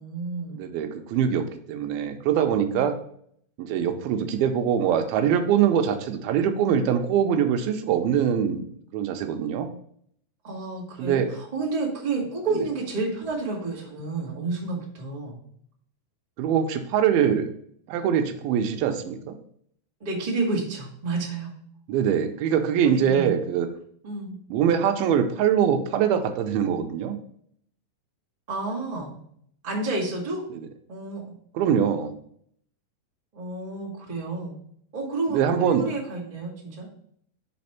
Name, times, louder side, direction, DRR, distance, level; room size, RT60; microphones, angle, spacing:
voice 1, 0.0-0.6 2.7-2.8 10.4-15.4 20.0-21.5 23.0-23.3 24.0-24.4 28.5-29.2 29.6-30.4 30.9-31.3 33.3-34.5 34.9-35.4 35.7-37.0, right 3 dB, 25° right, -5 dB, 0.8 m, -30 dB
voice 2, 0.6-3.0 3.6-8.7 8.9-9.7 11.0-11.3 16.4-17.5 17.9-19.4 21.9-23.7 24.5-27.2 31.5-32.1 35.3-35.9, right 8 dB, 85° right, 7 dB, 2.5 m, -23 dB
5.0 x 4.2 x 5.7 m, 0.65 s
omnidirectional pair, 4.3 m